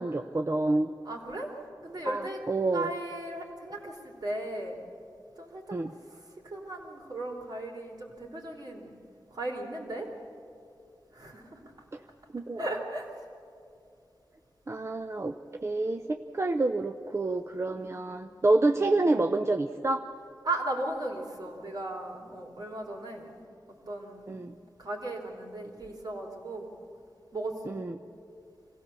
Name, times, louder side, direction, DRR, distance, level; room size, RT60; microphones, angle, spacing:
voice 1, 0.0-0.9 2.1-2.9 5.7-5.9 12.3-12.7 14.7-20.0 24.3-24.5 27.7-28.0, right 2 dB, 35° right, 7 dB, 0.6 m, -28 dB
voice 2, 1.1-1.5 1.8-2.4 2.7-4.8 5.4-5.6 6.4-8.9 9.3-10.1 11.1-11.6 12.6-13.1 17.8-17.9 18.8-18.9 20.4-23.3 23.9-24.4 24.8-26.7 27.3-27.8, right 2 dB, 60° right, 0 dB, 3.4 m, -36 dB
25.0 x 16.5 x 7.0 m, 2.5 s
wide cardioid pair, 90°, 8 cm